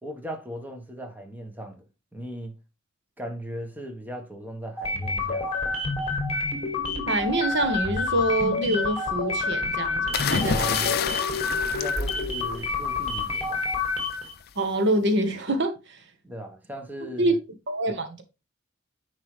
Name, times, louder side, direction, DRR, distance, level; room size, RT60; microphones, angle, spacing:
voice 1, 0.0-1.8 2.1-2.6 3.2-5.5 10.5-10.9 11.7-13.7 16.2-17.4, equal, 10° right, 1.2 m, -38 dB
sound 1, 4.8-14.3, left 3 dB, 30° left, 2.0 m, -28 dB
voice 2, 7.1-11.1 14.5-16.0 17.0-17.3 17.7-18.2, right 1 dB, 60° right, 1.3 m, -26 dB
sound 2, 10.1-12.9 14.1-14.4, left 7 dB, 50° left, 0.5 m, -28 dB
9.6 x 4.8 x 3.2 m
head